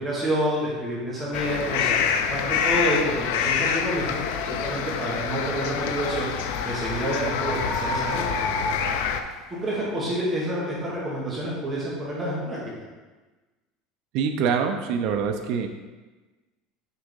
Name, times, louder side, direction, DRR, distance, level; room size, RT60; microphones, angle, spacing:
voice 1, 0.0-2.0 2.3-4.2 4.5-6.3 6.6-8.2 8.7-9.0 9.5-12.6, right 1 dB, 15° right, -6 dB, 1.4 m, -28 dB
sound 1, 1.3-9.2, left 7 dB, 70° left, 0.5 m, -27 dB
sound 2, 3.5-9.3, left 1 dB, 35° left, 1.4 m, -34 dB
voice 2, 14.1-15.7, right 6 dB, 50° right, 5 dB, 0.5 m, -25 dB
6.5 x 3.6 x 5.3 m, 1.2 s
cardioid pair, 175°, 0 cm